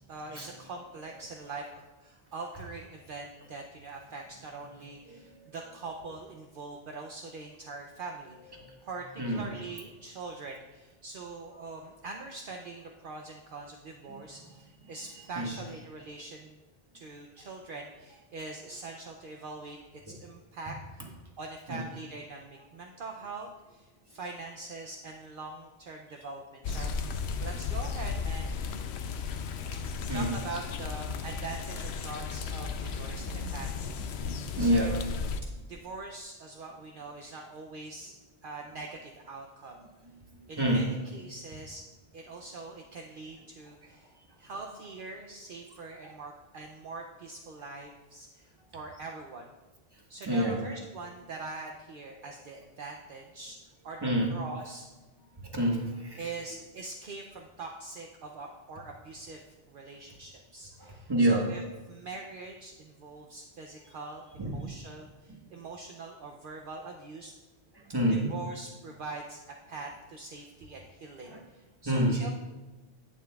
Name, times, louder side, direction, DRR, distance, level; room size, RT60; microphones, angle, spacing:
voice 1, 0.1-16.6 16.9-19.8 20.0-28.8 29.9-34.0 34.6-35.0 35.7-38.1 38.4-39.8 40.5-41.8 42.1-44.1 44.4-49.5 50.1-53.6 53.8-54.0 54.3-54.9 56.2-61.6 61.9-67.3 68.1-69.4 69.7-72.3, right 3 dB, 60° right, 2 dB, 0.7 m, -43 dB
sound 1, 26.6-35.4, left 5 dB, 85° left, 0.9 m, -35 dB
voice 2, 34.2-34.9 40.3-40.8 46.0-46.1 50.2-50.6 54.0-54.3 55.5-56.2 60.8-61.4 64.4-64.7 67.9-68.3 71.3-71.4 71.8-72.2, right 1 dB, 25° right, 0 dB, 1.3 m, -28 dB
11.0 x 8.7 x 2.3 m, 1.2 s
omnidirectional pair, 1.1 m